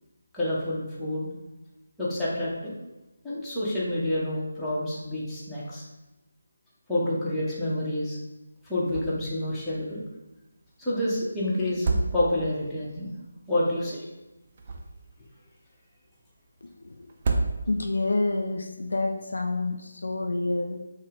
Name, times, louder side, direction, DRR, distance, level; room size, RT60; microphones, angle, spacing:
voice 1, 0.3-1.3 2.0-2.8 3.2-5.8 6.9-8.2 8.6-10.0 10.8-13.1 13.5-14.0, left 1 dB, 5° left, -9 dB, 0.9 m, -28 dB
sound 1, 8.9-9.4 9.7-9.8 11.6-12.6 14.3-15.2 17.1-18.0, right 3 dB, 35° right, 0.5 m, -29 dB
voice 2, 16.6-17.1 17.7-20.8, left 2 dB, 65° left, 5 dB, 0.4 m, -28 dB
5.5 x 2.1 x 3.7 m, 1.0 s
figure-of-eight pair, 155°, 0 cm